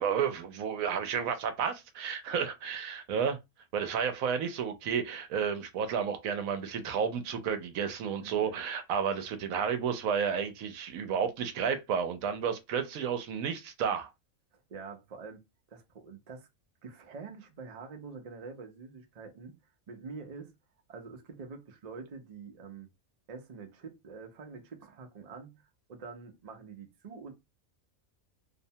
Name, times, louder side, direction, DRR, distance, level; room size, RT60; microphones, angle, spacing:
voice 1, 0.0-3.4 3.7-14.1, right 7 dB, 75° right, 1.0 m, -31 dB
voice 2, 8.2-8.6 14.5-15.4 15.7-16.5 16.8-19.6 19.9-20.5 20.9-22.9 23.3-27.3, right 4 dB, 45° right, 0.5 m, -46 dB
2.7 x 2.1 x 2.7 m
omnidirectional pair, 1.5 m